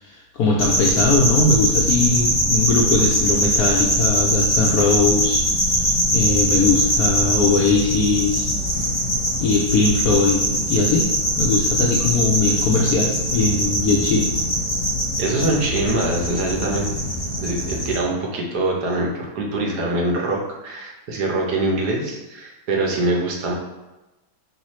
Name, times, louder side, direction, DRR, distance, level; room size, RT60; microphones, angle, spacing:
voice 1, 0.0-8.5 9.4-11.1 11.4-14.3, left 3 dB, 70° left, -2 dB, 1.0 m, -20 dB
sound 1, 0.6-18.0, equal, 15° left, 1.2 m, -22 dB
voice 2, 15.2-16.9 17.4-23.5, right 2 dB, 85° right, -1 dB, 1.5 m, -24 dB
4.9 x 3.2 x 3.1 m, 1.0 s
omnidirectional pair, 1.7 m